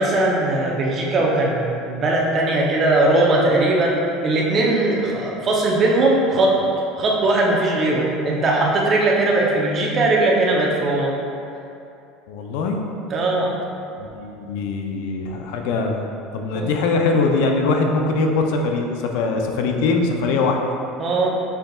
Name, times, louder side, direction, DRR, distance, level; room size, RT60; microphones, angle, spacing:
voice 1, 0.0-4.0 4.2-6.6 7.0-11.1 13.1-13.5 16.5-16.7 21.0-21.3, right 2 dB, 30° right, -3 dB, 0.7 m, -19 dB
voice 2, 12.3-12.8 14.0-16.0 16.3-20.6, left 3 dB, 70° left, 3 dB, 0.5 m, -22 dB
5.6 x 3.9 x 2.4 m, 2.6 s
cardioid pair, 150°, 0 cm